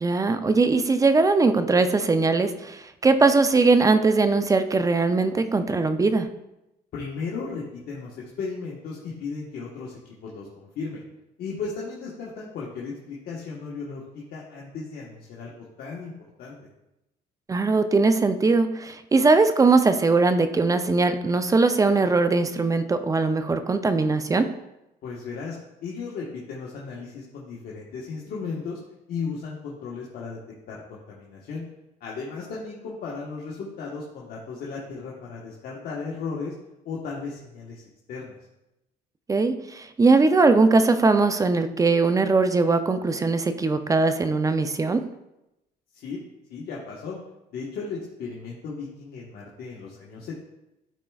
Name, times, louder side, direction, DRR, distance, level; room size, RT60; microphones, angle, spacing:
voice 1, 0.0-6.3 17.5-24.5 39.3-45.1, right 3 dB, 20° right, 10 dB, 0.4 m, -20 dB
voice 2, 6.9-11.0 11.4-15.5 15.8-16.1 16.4-16.6 25.0-28.8 29.1-30.4 30.7-31.6 32.0-36.5 36.8-37.8 38.1-38.4 45.9-46.2 46.5-47.2 47.5-50.4, left 4 dB, 65° left, -4 dB, 1.2 m, -35 dB
12.5 x 4.4 x 2.3 m, 0.91 s
cardioid pair, 110°, 17 cm